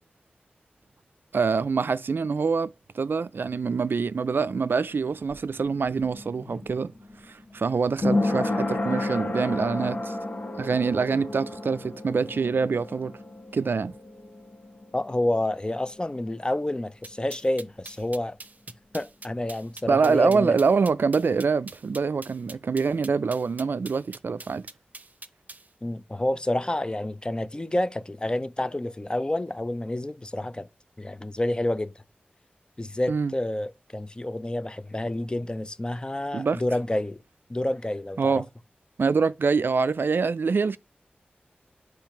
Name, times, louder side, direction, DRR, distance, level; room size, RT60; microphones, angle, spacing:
voice 1, 1.3-6.9 7.3-10.2 10.6-13.1 13.5-13.9 19.9-24.7 33.1-33.3 36.3-36.6 38.2-38.5 39.0-40.8, right 5 dB, 70° right, 0.3 m, -25 dB
sound 1, 4.9-16.4 16.7-16.8, left 2 dB, 60° left, 1.5 m, -32 dB
voice 2, 14.9-18.4 18.9-20.5 25.8-30.7 31.0-31.9 32.8-37.2 37.5-38.4, left 1 dB, 25° left, 0.5 m, -29 dB
sound 2, 17.0-25.7, right 3 dB, 45° right, 0.7 m, -44 dB
8.3 x 3.2 x 5.7 m
cardioid pair, 50°, 4 cm